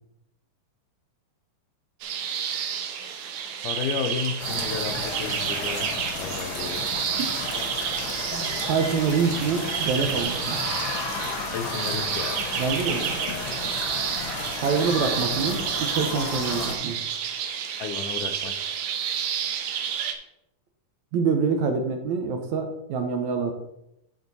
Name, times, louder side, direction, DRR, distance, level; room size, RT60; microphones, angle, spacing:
sound 1, 2.0-20.1, right 8 dB, 90° right, 2.6 m, -30 dB
voice 1, 3.6-5.9 6.2-6.8 11.5-12.4 17.8-18.5, left 6 dB, 80° left, 7 dB, 2.2 m, -32 dB
sound 2, 4.1-8.9, right 2 dB, 40° right, 1.8 m, -43 dB
sound 3, 4.4-16.8, left 3 dB, 55° left, 1.5 m, -33 dB
voice 2, 8.3-10.6 12.6-13.2 14.6-17.0 21.1-23.5, right 5 dB, 70° right, 4 dB, 1.9 m, -26 dB
12.0 x 4.3 x 4.1 m, 0.84 s
omnidirectional pair, 3.8 m